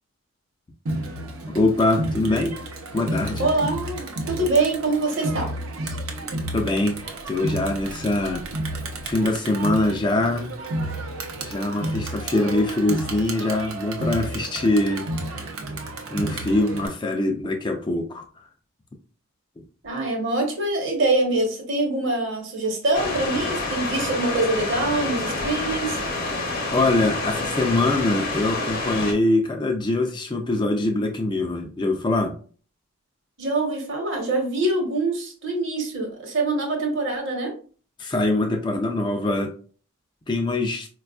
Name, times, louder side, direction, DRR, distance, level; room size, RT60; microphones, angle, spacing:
Crowd, 0.9-16.9, right 1 dB, 80° right, 0.6 m, -31 dB
voice 1, 1.5-2.6 2.9-3.5 6.5-7.0 7.3-8.5 9.0-10.6 11.4-15.0 15.4-15.5 16.1-18.2 26.7-32.3 38.0-39.5 40.3-40.9, left 2 dB, 20° left, 3 dB, 0.3 m, -23 dB
voice 2, 3.4-5.5 19.8-26.0 33.4-37.5, right 2 dB, 60° right, 2 dB, 1.0 m, -24 dB
sound 1, 22.9-29.1, left 2 dB, 45° left, 0.7 m, -28 dB
4.3 x 2.3 x 2.3 m, 0.40 s
head